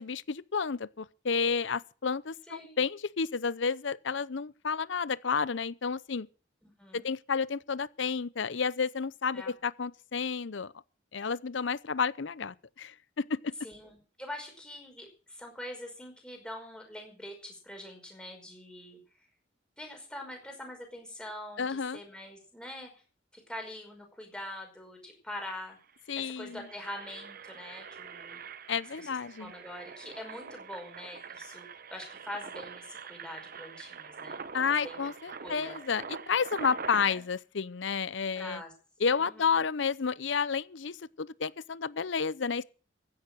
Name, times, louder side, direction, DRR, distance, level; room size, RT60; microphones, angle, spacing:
voice 1, 0.0-6.3 6.9-10.7 11.1-13.5 21.6-22.0 26.1-26.6 28.7-29.5 34.5-38.6 39.0-42.6, left 5 dB, 65° left, 0.7 m, -31 dB
voice 2, 2.5-2.8 6.6-7.1 9.3-9.6 13.6-19.0 19.8-22.9 23.3-25.8 26.2-28.4 29.0-29.1 29.4-35.0 35.4-35.8 36.9-37.3 38.4-38.7 39.2-39.7, left 1 dB, 5° left, 5.3 m, -44 dB
Engine, 25.3-25.4 25.7-25.9 26.4-37.1, right 5 dB, 50° right, 0.9 m, -44 dB
15.5 x 10.5 x 6.4 m
head